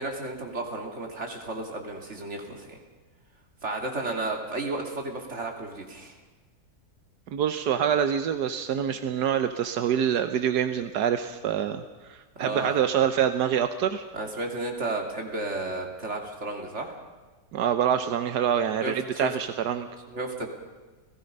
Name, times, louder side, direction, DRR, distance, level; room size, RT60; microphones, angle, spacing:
voice 1, 0.0-2.8 3.6-6.2 12.4-12.8 14.1-17.0 18.8-19.3 20.1-20.5, right 2 dB, 45° right, 2 dB, 3.1 m, -33 dB
voice 2, 7.3-11.8 12.1-14.0 17.5-19.9, right 9 dB, 85° right, 9 dB, 1.5 m, -26 dB
30.0 x 17.5 x 5.4 m, 1.3 s
omnidirectional pair, 1.7 m